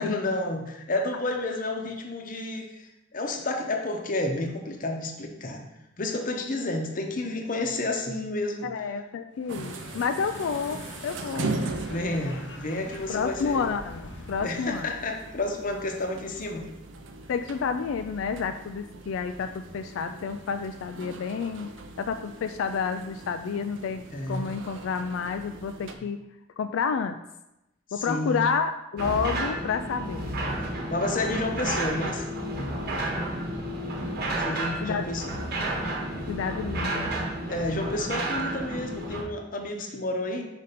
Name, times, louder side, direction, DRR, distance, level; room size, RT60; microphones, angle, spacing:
voice 1, 0.0-5.6 6.0-8.7 11.9-13.6 14.4-16.6 24.1-24.5 27.9-28.5 30.9-32.3 34.4-35.3 37.5-40.5, left 2 dB, 45° left, 3 dB, 0.8 m, -30 dB
voice 2, 8.6-11.5 13.1-14.9 17.3-21.7 22.0-24.0 24.3-26.2 26.6-27.2 27.9-30.3 34.8-35.1 36.3-37.1, left 5 dB, 85° left, 8 dB, 0.3 m, -30 dB
sound 1, 9.3-14.5, left 2 dB, 70° left, 0.9 m, -44 dB
sound 2, 9.5-26.0, right 3 dB, 75° right, 0.6 m, -40 dB
sound 3, 29.0-39.2, right 1 dB, 55° right, 1.1 m, -31 dB
5.2 x 5.2 x 4.1 m, 0.91 s
head